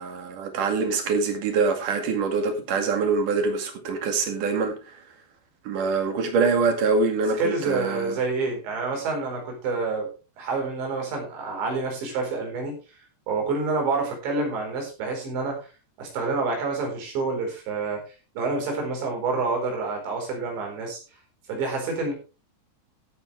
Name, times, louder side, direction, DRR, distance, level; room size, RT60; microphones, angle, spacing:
voice 1, 0.0-4.9 5.7-8.2, right 4 dB, 55° right, 3.4 m, -24 dB
voice 2, 7.4-10.1 10.4-12.8 13.3-15.7 16.0-18.0 18.4-21.0 21.5-22.1, right 3 dB, 80° right, 6.8 m, -28 dB
15.0 x 9.0 x 3.4 m
omnidirectional pair, 5.1 m